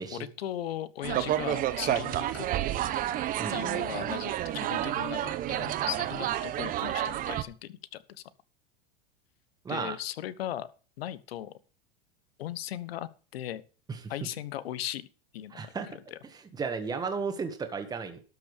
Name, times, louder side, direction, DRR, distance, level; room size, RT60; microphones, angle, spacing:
voice 1, 0.1-2.5 3.5-8.2 9.7-10.7 11.0-11.5 12.4-13.6 14.1-15.1 15.3-15.7 16.1-16.2, left 12 dB, 85° left, 16 dB, 1.2 m, -38 dB
sound 1, 1.0-7.4, right 12 dB, 30° right, 0.9 m, -30 dB
voice 2, 9.7-10.0 13.9-14.0 15.5-15.9 16.5-18.2, right 5 dB, 15° right, 7 dB, 1.7 m, -33 dB
12.5 x 5.9 x 6.5 m, 0.36 s
supercardioid pair, 150°, 30 cm